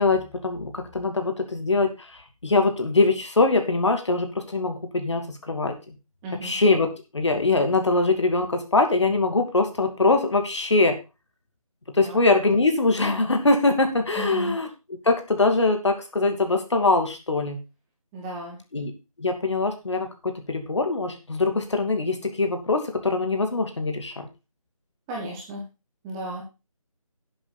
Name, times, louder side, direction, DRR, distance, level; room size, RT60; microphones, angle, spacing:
voice 1, 0.0-6.0 6.4-11.0 11.9-17.6 18.7-18.9 19.2-24.3, left 3 dB, 50° left, 5 dB, 2.7 m, -23 dB
voice 2, 6.2-6.5 12.0-12.2 14.2-14.5 18.1-18.6 25.1-25.6 26.0-26.4, right 1 dB, 5° right, -2 dB, 1.1 m, -33 dB
12.0 x 7.8 x 4.1 m, 0.28 s
figure-of-eight pair, 160°, 19 cm